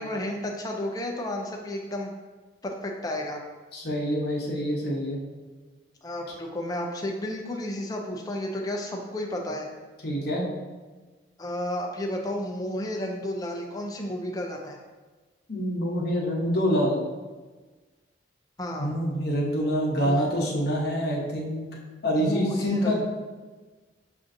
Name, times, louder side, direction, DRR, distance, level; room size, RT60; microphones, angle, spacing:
voice 1, 0.0-2.1 2.6-3.4 6.0-9.7 11.4-14.8 18.6-18.9 20.0-20.3 22.2-23.0, left 1 dB, 20° left, 1 dB, 0.4 m, -32 dB
voice 2, 3.7-5.2 10.0-10.5 15.5-17.0 18.8-21.7 22.0-23.0, equal, 55° left, -3 dB, 0.9 m, -26 dB
6.9 x 2.5 x 2.6 m, 1.3 s
head